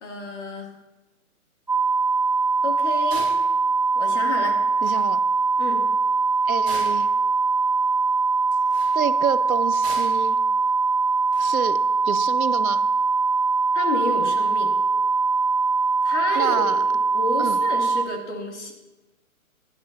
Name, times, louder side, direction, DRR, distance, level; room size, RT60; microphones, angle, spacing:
voice 1, 0.0-0.7 2.6-3.3 4.0-4.6 5.6-5.8 13.7-14.7 16.0-16.8 17.1-18.7, left 2 dB, 55° left, 0 dB, 2.6 m, -30 dB
sound 1, 1.7-18.0, right 4 dB, 30° right, 0.4 m, -22 dB
sound 2, 3.1-3.4 4.5-4.6 4.8-5.0 6.7-7.1 8.6-8.9 9.8-10.2 11.3-11.6, right 2 dB, 10° right, 3.1 m, -38 dB
voice 2, 4.8-5.2 6.5-7.1 8.9-10.4 11.4-11.8 12.0-12.8 16.4-16.8 17.4-17.6, right 8 dB, 75° right, 14 dB, 0.7 m, -28 dB
16.5 x 10.5 x 2.7 m, 1.1 s
hypercardioid pair, 170°, 43 cm